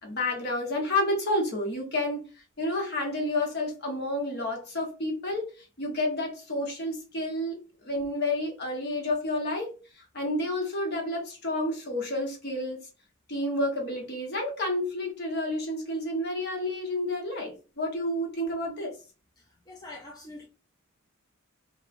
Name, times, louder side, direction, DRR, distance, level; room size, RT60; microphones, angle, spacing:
voice 1, 0.0-2.2 2.6-5.5 5.8-12.8 13.3-18.9, left 1 dB, 50° left, 0.9 m, -30 dB
voice 2, 19.4-20.5, left 2 dB, 20° left, 0.4 m, -45 dB
3.0 x 2.1 x 2.5 m
head